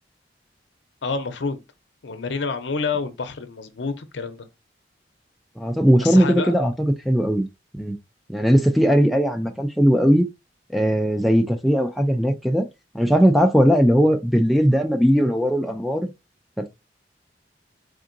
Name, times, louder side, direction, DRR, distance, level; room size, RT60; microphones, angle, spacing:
voice 1, 1.0-1.6 2.0-4.5 6.0-6.6, left 4 dB, 80° left, 0.6 m, -28 dB
voice 2, 5.6-7.5 7.7-8.0 8.3-10.3 10.7-12.6 12.9-16.1 16.6-16.7, equal, ahead, 0.3 m, -19 dB
3.7 x 3.6 x 2.5 m
head